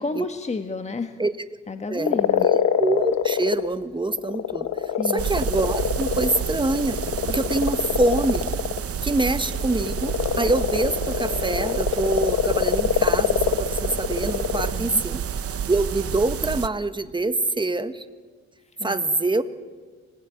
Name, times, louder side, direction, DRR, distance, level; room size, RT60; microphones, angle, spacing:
voice 1, 0.0-1.2 1.7-2.5 5.0-5.3 14.7-15.0 18.8-19.1, left 3 dB, 20° left, 7 dB, 1.5 m, -31 dB
voice 2, 1.9-4.7 5.0-7.0 7.3-8.5 9.0-15.2 15.7-18.0 18.8-19.4, right 2 dB, 15° right, 10 dB, 1.7 m, -25 dB
sound 1, 2.1-3.7 4.0-14.7, left 9 dB, 65° left, 1.5 m, -25 dB
sound 2, 5.2-16.7, right 8 dB, 50° right, 1.1 m, -30 dB
26.0 x 20.0 x 9.3 m, 1.4 s
cardioid pair, 90°, 30 cm